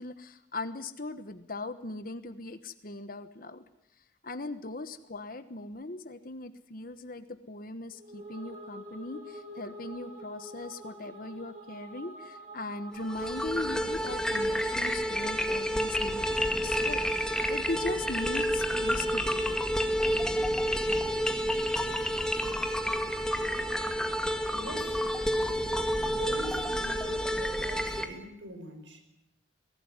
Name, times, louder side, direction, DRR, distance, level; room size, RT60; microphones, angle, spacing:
voice 1, 0.0-3.6 4.2-19.6, left 2 dB, 50° left, 10 dB, 1.2 m, -39 dB
sound 1, 7.9-13.7, right 1 dB, 40° right, 6.6 m, -46 dB
sound 2, 13.0-28.1, equal, 5° left, 1.9 m, -29 dB
voice 2, 24.5-25.1 26.2-29.0, right 1 dB, 80° right, 6 dB, 5.1 m, -43 dB
23.0 x 17.5 x 9.8 m, 0.84 s
head